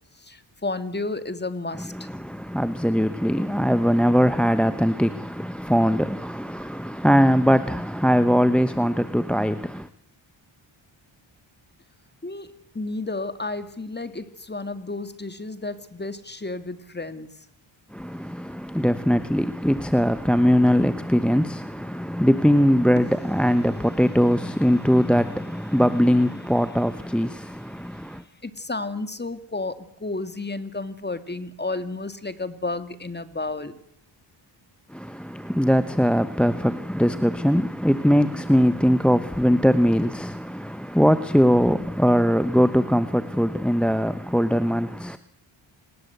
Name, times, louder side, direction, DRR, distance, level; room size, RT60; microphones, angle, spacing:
voice 1, 0.1-2.1 12.2-17.5 27.7-33.8, left 2 dB, 20° left, 2.2 m, -32 dB
voice 2, 1.9-9.9 17.9-28.2 34.9-45.2, equal, ahead, 1.0 m, -21 dB
27.5 x 19.5 x 8.1 m
cardioid pair, 70°, 49 cm